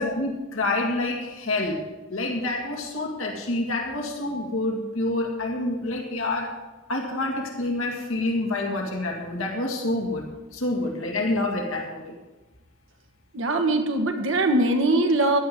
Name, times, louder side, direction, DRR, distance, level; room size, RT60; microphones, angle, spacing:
voice 1, 0.0-1.8 2.1-6.5 6.9-12.2, left 2 dB, 85° left, 0 dB, 2.1 m, -27 dB
voice 2, 13.3-15.4, right 2 dB, 70° right, 5 dB, 1.4 m, -22 dB
14.5 x 11.0 x 3.8 m, 1.1 s
head